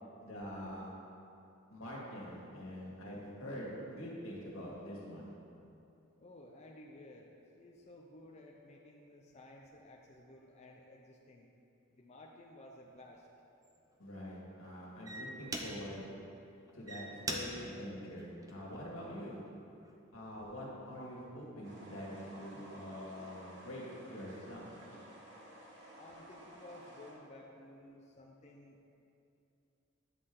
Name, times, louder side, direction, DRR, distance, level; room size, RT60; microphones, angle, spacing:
voice 1, 0.2-1.0 1.7-5.3 14.0-16.2 16.7-19.5 20.1-24.7, equal, 90° left, -4 dB, 2.0 m, -45 dB
voice 2, 6.2-11.5 11.9-13.3 25.9-28.9, left 1 dB, 30° left, -1 dB, 0.5 m, -55 dB
sound 1, 12.9-13.0 13.6-13.9 14.6-14.7 15.0-16.1 16.7-19.0 19.6-19.9, right 1 dB, 15° right, 0.5 m, -43 dB
sound 2, 21.6-27.1, right 1 dB, 60° right, 1.5 m, -54 dB
9.7 x 6.4 x 3.8 m, 2.7 s
head